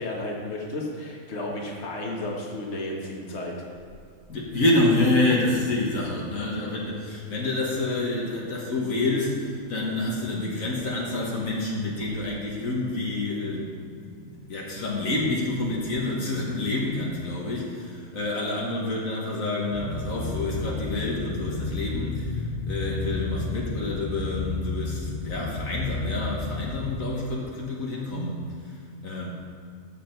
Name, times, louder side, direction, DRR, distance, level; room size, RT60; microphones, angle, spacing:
voice 1, 0.0-3.5, left 1 dB, 50° left, -2 dB, 1.8 m, -33 dB
voice 2, 4.3-29.3, left 2 dB, 70° left, -3 dB, 1.9 m, -28 dB
sound 1, 19.7-27.0, left 3 dB, 35° left, 0.7 m, -31 dB
14.0 x 7.7 x 4.5 m, 2.3 s
omnidirectional pair, 1.5 m